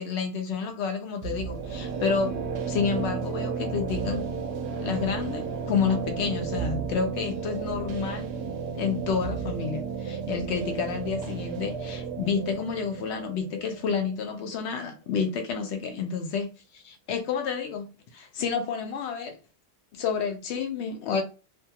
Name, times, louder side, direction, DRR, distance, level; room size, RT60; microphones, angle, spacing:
voice 1, 0.0-2.3 2.6-4.3 4.8-8.3 8.7-16.5 16.8-17.9 18.1-19.4 19.9-21.2, left 6 dB, 80° left, 0.8 m, -29 dB
sound 1, 1.2-14.9, right 5 dB, 70° right, 0.8 m, -33 dB
2.5 x 2.3 x 2.7 m
omnidirectional pair, 1.1 m